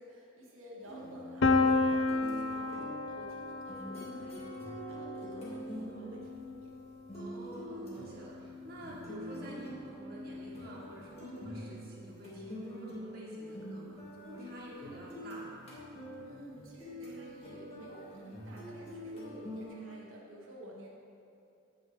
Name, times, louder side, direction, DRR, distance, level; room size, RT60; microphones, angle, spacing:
voice 1, 0.0-6.7 14.6-15.2 16.2-20.9, right 1 dB, 90° right, -4 dB, 1.3 m, -51 dB
sound 1, 0.8-6.8 7.1-19.7, equal, 30° left, 1.8 m, -45 dB
Piano, 1.4-7.2, left 3 dB, 75° left, 0.6 m, -32 dB
voice 2, 7.1-15.6, right 1 dB, 50° right, -5 dB, 1.7 m, -49 dB
15.0 x 5.5 x 3.3 m, 2.5 s
head